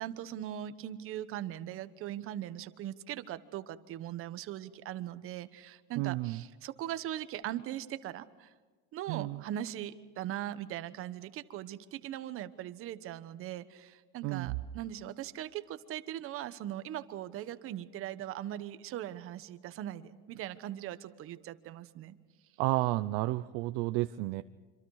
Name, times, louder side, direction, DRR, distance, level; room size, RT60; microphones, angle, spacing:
voice 1, 0.0-8.5 8.9-22.2, right 12 dB, 40° right, 12 dB, 1.2 m, -40 dB
voice 2, 6.0-6.4 9.1-9.4 14.2-14.6 22.6-24.4, right 19 dB, 55° right, 11 dB, 0.7 m, -31 dB
26.5 x 26.0 x 4.9 m, 1.4 s
cardioid pair, 155°, 35 cm